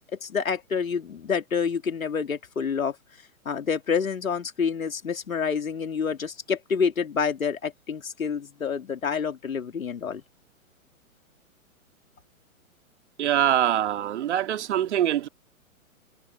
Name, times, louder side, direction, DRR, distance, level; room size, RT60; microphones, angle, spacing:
voice 1, 0.2-2.9 3.4-10.2, left 6 dB, 75° left, 2.9 m, -28 dB
voice 2, 13.2-15.3, right 11 dB, 55° right, 2.4 m, -24 dB
figure-of-eight pair, 125°, 41 cm